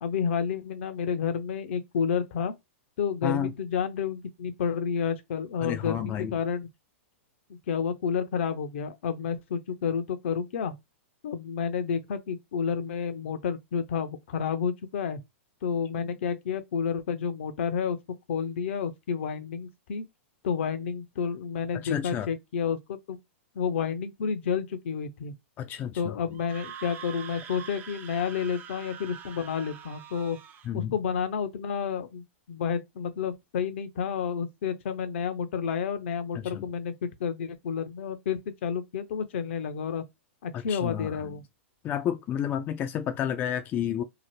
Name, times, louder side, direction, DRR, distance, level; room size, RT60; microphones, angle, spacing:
voice 1, 0.0-2.5 3.0-6.7 7.5-10.8 11.2-15.2 15.6-18.0 18.3-20.0 20.4-23.2 23.5-25.3 26.0-30.4 30.7-40.0 40.4-41.4, left 6 dB, 65° left, 0.6 m, -30 dB
voice 2, 5.6-6.4 21.7-22.3 25.6-26.2 30.6-30.9 36.3-36.7 40.7-41.3 41.8-44.0, left 9 dB, 25° left, 0.3 m, -31 dB
Screaming, 26.3-30.7, right 8 dB, 25° right, 0.5 m, -44 dB
2.8 x 2.1 x 3.1 m
hypercardioid pair, 120°, 7 cm